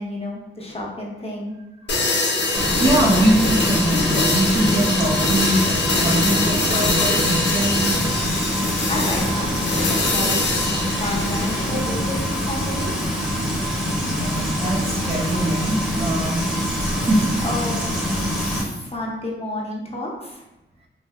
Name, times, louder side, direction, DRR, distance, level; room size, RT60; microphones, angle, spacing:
voice 1, 0.0-1.5 8.5-10.6 11.0-13.1 17.4-18.0 18.4-20.4, left 1 dB, 30° left, -3 dB, 0.8 m, -31 dB
voice 2, 1.8-7.8 11.0-11.1 14.0-16.5 17.0-17.3, right 1 dB, 30° right, -2 dB, 0.5 m, -23 dB
sound 1, 1.9-11.7, left 3 dB, 65° left, 0.5 m, -23 dB
Frying (food), 2.5-18.6, equal, 5° right, 0.9 m, -24 dB
3.4 x 2.5 x 2.3 m, 0.97 s
cardioid pair, 60°, 20 cm